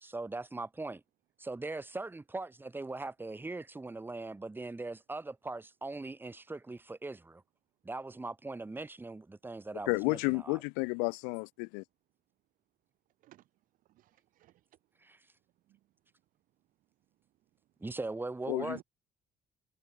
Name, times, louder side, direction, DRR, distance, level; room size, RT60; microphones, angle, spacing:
voice 1, 0.0-1.0 1.4-7.4 7.8-10.2 10.4-10.6 17.8-18.8, right 2 dB, 15° right, 1.0 m, -40 dB
voice 2, 9.9-11.8 18.5-18.8, left 40 dB or more, 90° left, 0.5 m, -32 dB
voice 3, 13.1-17.9 18.6-18.8, right 15 dB, 70° right, 7.3 m, -64 dB
supercardioid pair, 80°, 14 cm